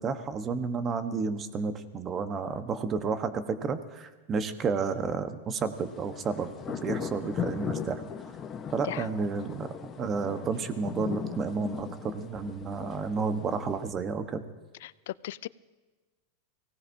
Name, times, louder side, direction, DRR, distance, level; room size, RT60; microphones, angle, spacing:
voice 1, 0.0-8.0 8.7-9.7 10.0-14.4, right 5 dB, 30° right, 9 dB, 1.1 m, -31 dB
sound 1, 5.8-13.9, left 7 dB, 30° left, 1.1 m, -38 dB
voice 2, 14.8-15.5, left 15 dB, 70° left, 19 dB, 0.4 m, -37 dB
24.0 x 17.5 x 2.8 m, 1.3 s
hypercardioid pair, 115°, 0 cm